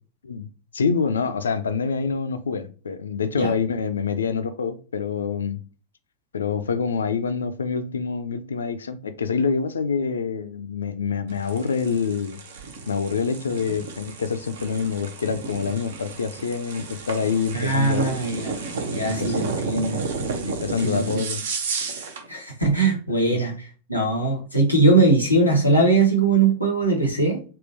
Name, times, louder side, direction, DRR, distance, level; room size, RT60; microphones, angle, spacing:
voice 1, 0.2-5.6 6.3-12.4 12.9-18.1 19.2-19.4 20.4-21.4 23.1-23.4, left 5 dB, 70° left, 0.3 m, -26 dB
sound 1, 11.3-22.3, right 4 dB, 60° right, 0.6 m, -32 dB
voice 2, 17.5-18.6 18.9-20.1 20.8-21.2 22.3-27.4, right 3 dB, 90° right, 1.0 m, -21 dB
3.6 x 2.2 x 2.7 m
figure-of-eight pair, 90°, 0 cm